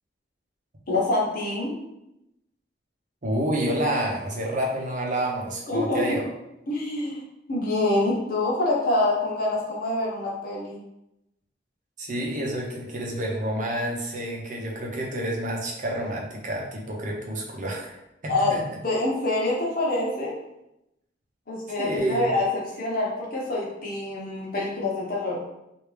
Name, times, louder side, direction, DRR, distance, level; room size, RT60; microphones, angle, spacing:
voice 1, 0.9-1.7 5.7-6.1 6.7-7.2 7.5-10.8 18.3-18.6 18.8-20.4 21.5-25.4, left 2 dB, 50° left, -4 dB, 1.0 m, -26 dB
voice 2, 3.2-6.2 12.0-18.6 21.8-22.2, right 1 dB, 45° right, -1 dB, 0.8 m, -29 dB
3.2 x 2.6 x 3.3 m, 0.85 s
head